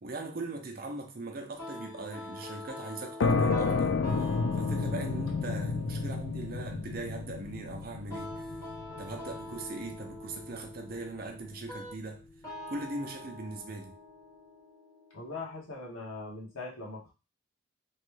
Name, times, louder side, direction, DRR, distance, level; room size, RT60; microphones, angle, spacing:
voice 1, 0.0-8.4 9.0-12.2 12.7-14.0, right 2 dB, 45° right, 0.5 m, -40 dB
sound 1, 1.6-16.5, left 1 dB, 15° left, 1.1 m, -46 dB
sound 2, 3.2-10.6, left 4 dB, 60° left, 0.3 m, -31 dB
voice 2, 15.1-17.1, left 3 dB, 85° left, 1.1 m, -41 dB
3.0 x 2.2 x 3.1 m
head